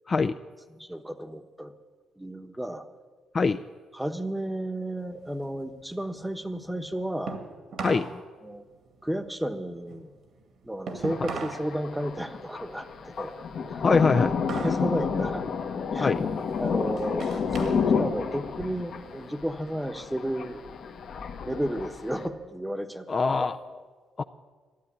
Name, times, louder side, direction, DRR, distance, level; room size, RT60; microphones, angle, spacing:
voice 1, 0.8-1.7 2.2-2.8 3.9-7.4 8.4-8.7 9.0-10.1 10.6-13.3 13.7-13.8 14.5-15.4 15.9-16.1 16.6-20.7 21.5-23.1 23.4-23.5, right 1 dB, 5° right, 8 dB, 1.0 m, -33 dB
sound 1, 5.0-8.1 8.5-11.7 12.0-14.9 15.2-15.6 16.2-17.8 18.2-19.3, right 4 dB, 65° right, 2.0 m, -39 dB
voice 2, 7.8-8.2 13.8-14.4 16.0-16.2 23.1-23.8 24.2-24.3, left 4 dB, 35° left, 8 dB, 0.4 m, -24 dB
Thunder, 11.0-22.3, left 6 dB, 60° left, 1.2 m, -30 dB
13.0 x 7.9 x 9.9 m, 1.4 s
cardioid pair, 90°, 0 cm